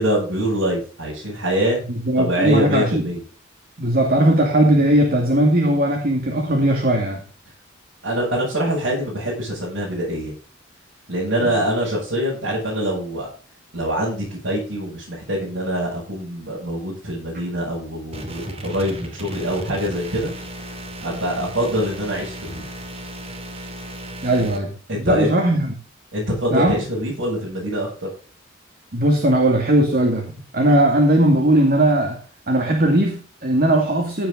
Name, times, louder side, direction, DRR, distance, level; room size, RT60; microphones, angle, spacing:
voice 1, 0.0-1.8 2.2-3.2 8.0-10.3 11.1-13.3 13.7-20.3 21.0-22.7 24.4-24.5 24.9-25.3 26.1-28.1, equal, 65° right, -6 dB, 7.9 m, -24 dB
voice 2, 1.9-3.1 3.8-7.2 11.4-11.5 24.2-25.7 26.5-26.8 28.9-32.2 32.5-34.3, right 1 dB, 50° right, 3 dB, 2.5 m, -18 dB
sound 1, 18.1-24.6, right 1 dB, 30° right, 2.7 m, -35 dB
16.0 x 7.9 x 3.9 m, 0.39 s
head